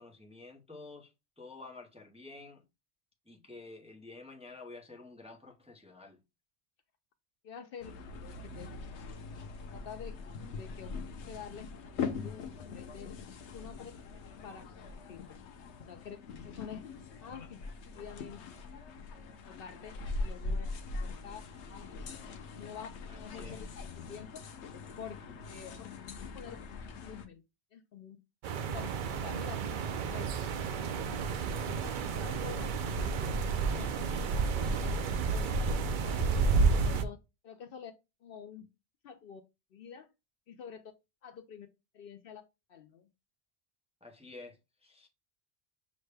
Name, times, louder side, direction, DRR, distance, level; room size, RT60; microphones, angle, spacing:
voice 1, 0.0-2.6 3.3-6.2 23.1-23.6 44.0-45.1, left 3 dB, 5° right, 0.6 m, -50 dB
voice 2, 7.4-7.9 8.2-8.7 9.7-10.2 10.4-10.9 11.3-11.7 12.0-12.4 12.7-13.1 13.5-13.9 14.4-14.6 15.1-15.4 15.9-16.2 16.4-16.8 17.2-17.6 18.0-18.4 19.5-19.9 20.2-20.7 21.0-21.4 21.7-22.1 22.6-22.9 23.2-23.7 23.9-24.4 25.0-25.2 25.4-25.9 26.2-26.6 27.0-27.4 27.7-28.2 28.7-28.9 29.2-29.6 30.0-30.4 31.6-31.9 32.2-32.7 32.9-33.4 33.7-34.1 34.5-34.9 35.3-35.6 36.0-36.4 36.8-37.2 37.4-37.9 38.2-38.7 39.0-39.4 39.7-40.1 40.5-40.9 41.2-41.7 41.9-42.4 42.7-43.1, left 7 dB, 65° left, 0.7 m, -47 dB
sound 1, 7.8-27.3, left 4 dB, 90° left, 0.9 m, -42 dB
sound 2, 28.4-37.0, right 4 dB, 60° right, 0.6 m, -31 dB
6.2 x 2.1 x 3.2 m
omnidirectional pair, 1.1 m